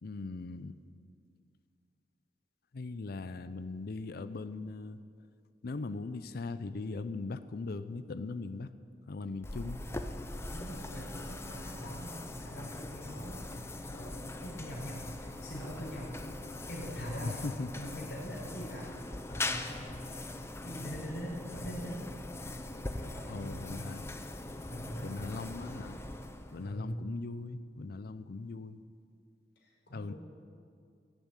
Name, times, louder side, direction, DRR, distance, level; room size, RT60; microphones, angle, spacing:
voice 1, 0.0-0.8 2.7-5.0 5.6-8.7 9.1-9.8 17.2-17.7 23.3-24.0 25.0-26.0 26.5-28.8 29.9-30.1, left 3 dB, 60° left, 12 dB, 0.5 m, -39 dB
sound 1, 9.4-26.8, left 2 dB, 15° left, 0.6 m, -41 dB
voice 2, 10.5-15.1 15.4-16.2 16.7-17.4 17.7-20.0 20.6-22.1 23.0-23.8 24.7-25.1 26.6-26.9 29.6-30.2, equal, 75° left, -3 dB, 4.8 m, -43 dB
17.0 x 7.2 x 9.0 m, 2.3 s
head